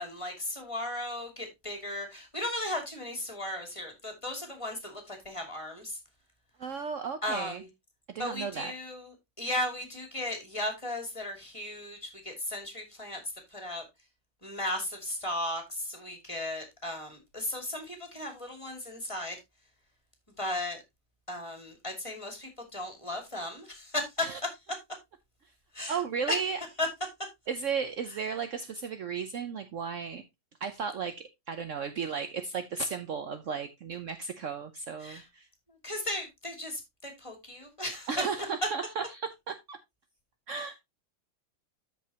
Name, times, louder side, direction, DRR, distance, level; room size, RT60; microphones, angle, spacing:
voice 1, 0.0-5.9 7.2-7.7 8.2-9.1 9.4-13.2 13.5-13.8 14.4-19.4 20.4-20.8 21.3-24.0 25.7-26.0 26.3-26.4 26.8-26.9 35.0-35.2 35.8-38.1, left 1 dB, 15° left, 2.6 m, -36 dB
voice 2, 6.6-7.6 8.1-8.7 24.2-24.4 25.9-26.6 27.5-30.2 30.6-35.5 38.1-39.8 40.5-40.8, right 5 dB, 75° right, 0.7 m, -35 dB
13.5 x 5.3 x 2.8 m
omnidirectional pair, 2.3 m